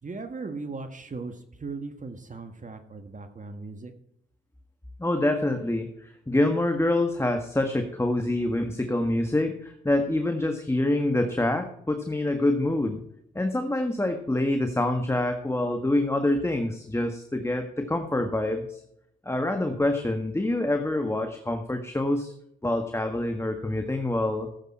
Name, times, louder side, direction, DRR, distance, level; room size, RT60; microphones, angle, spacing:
voice 1, 0.0-3.9, right 3 dB, 40° right, 7 dB, 1.6 m, -38 dB
voice 2, 5.0-13.0 13.3-18.8 19.2-22.3 22.6-24.5, left 1 dB, 10° left, 5 dB, 1.6 m, -26 dB
14.5 x 8.1 x 4.4 m, 0.75 s
supercardioid pair, 45°, 21 cm